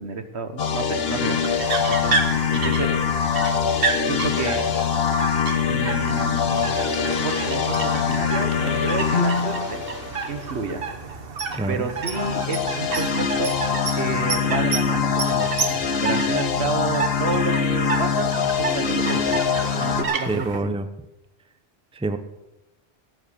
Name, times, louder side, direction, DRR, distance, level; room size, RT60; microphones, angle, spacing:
voice 1, 0.0-1.4 1.9-2.2 2.5-2.9 4.1-4.7 5.7-9.8 10.3-10.9 11.7-13.5 13.9-19.4 19.8-20.7, right 4 dB, 80° right, 8 dB, 1.5 m, -30 dB
sound 1, 0.6-10.6 12.0-20.0, left 6 dB, 65° left, 1.2 m, -23 dB
sound 2, 1.4-20.6, right 5 dB, 60° right, 1.3 m, -30 dB
voice 2, 20.3-20.9 22.0-22.2, right 2 dB, 5° right, 10 dB, 0.6 m, -25 dB
14.5 x 8.0 x 6.7 m, 0.93 s
omnidirectional pair, 1.1 m